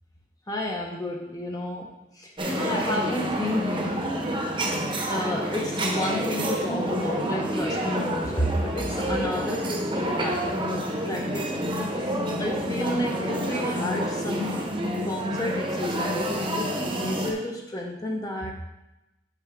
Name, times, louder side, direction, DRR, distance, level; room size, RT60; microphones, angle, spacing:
voice 1, 0.5-4.2 5.1-10.7 11.0-11.6 12.1-14.7 15.0-18.5, left 1 dB, 20° left, 0 dB, 0.8 m, -31 dB
sound 1, 2.4-17.3, right 1 dB, 25° right, 1.0 m, -28 dB
8.3 x 5.5 x 3.6 m, 0.95 s
head